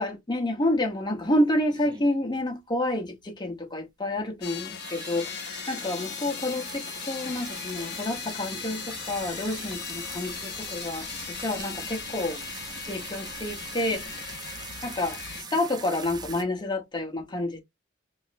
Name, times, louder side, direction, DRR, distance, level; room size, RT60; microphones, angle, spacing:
voice 1, 0.0-11.1 11.4-12.4 12.9-14.4 14.8-15.2 15.5-17.6, left 1 dB, 25° left, 0.9 m, -29 dB
sound 1, 0.7-0.8 1.2-1.3 1.7-2.4 2.7-2.8 3.0-3.1 3.5-3.6 4.1-4.3 4.7-16.4, right 5 dB, 20° right, 0.4 m, -42 dB
sound 2, 4.4-15.4, left 9 dB, 55° left, 0.5 m, -38 dB
3.1 x 2.0 x 4.0 m
head